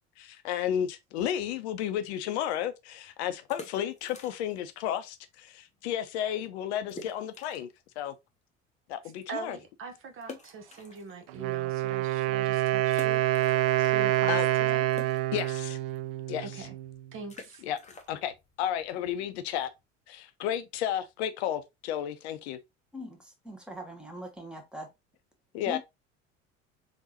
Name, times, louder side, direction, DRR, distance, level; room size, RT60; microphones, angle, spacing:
voice 1, 0.2-7.7 8.0-8.1 8.9-9.6 13.8-13.9 14.3-14.5 15.3-15.8 16.3-16.7 17.6-17.8 18.1-19.7 20.1-22.6 25.5-25.8, left 10 dB, 60° left, 0.6 m, -32 dB
sound 1, 3.5-4.7 5.0-5.1 5.7-5.8 6.1-6.2 6.9-7.8 8.3-8.4 10.2-11.5 12.0-12.1 12.9-14.1 14.3-19.8, left 4 dB, 20° left, 0.8 m, -49 dB
voice 2, 9.3-13.2 13.8-14.9 16.4-16.7 17.1-17.6, right 4 dB, 35° right, 1.0 m, -42 dB
Wind instrument woodwind instrument, 11.3-17.1, right 15 dB, 50° right, 0.4 m, -27 dB
voice 3, 22.9-24.9 25.7-25.8, equal, ahead, 1.3 m, -41 dB
3.9 x 3.5 x 2.8 m
figure-of-eight pair, 65°, 38 cm